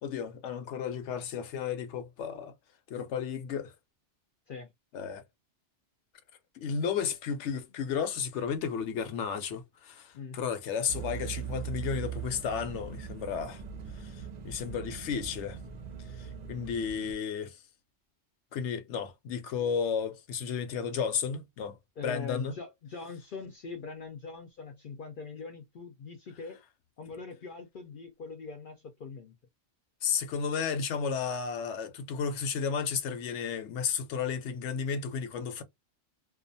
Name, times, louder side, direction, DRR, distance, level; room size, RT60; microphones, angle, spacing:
voice 1, 0.0-2.5 2.9-3.7 4.9-5.2 6.5-13.6 14.0-15.6 16.2-17.6 18.5-22.5 30.0-35.6, left 6 dB, 80° left, 0.9 m, -33 dB
sound 1, 10.9-17.1, right 8 dB, 50° right, 0.5 m, -41 dB
voice 2, 22.0-26.6 27.0-29.3, left 5 dB, 60° left, 0.6 m, -42 dB
2.4 x 2.3 x 2.5 m
omnidirectional pair, 1.2 m